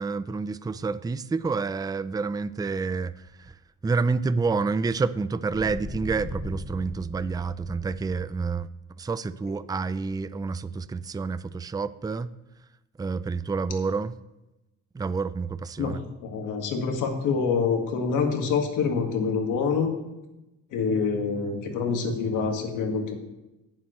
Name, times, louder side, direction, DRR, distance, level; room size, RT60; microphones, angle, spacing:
voice 1, 0.0-3.6 3.8-8.7 9.0-12.3 13.0-14.2 14.9-16.0, right 4 dB, 15° right, 15 dB, 0.4 m, -28 dB
sound 1, 5.5-8.7, left 3 dB, 30° left, 1.2 m, -39 dB
voice 2, 16.2-19.9 20.7-23.2, left 5 dB, 85° left, 3 dB, 1.9 m, -26 dB
18.0 x 7.3 x 3.2 m, 0.98 s
cardioid pair, 90°, 30 cm